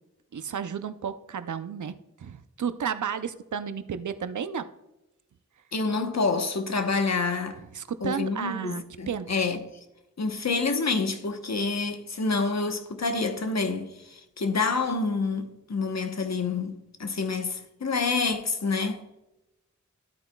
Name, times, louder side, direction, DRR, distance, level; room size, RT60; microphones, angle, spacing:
voice 1, 0.3-4.7 7.7-9.3, right 7 dB, 75° right, 0.6 m, -33 dB
voice 2, 5.7-7.6 8.0-9.6 10.2-19.0, left 4 dB, 60° left, 1.0 m, -28 dB
13.0 x 8.8 x 2.3 m
wide cardioid pair, 55°, 30 cm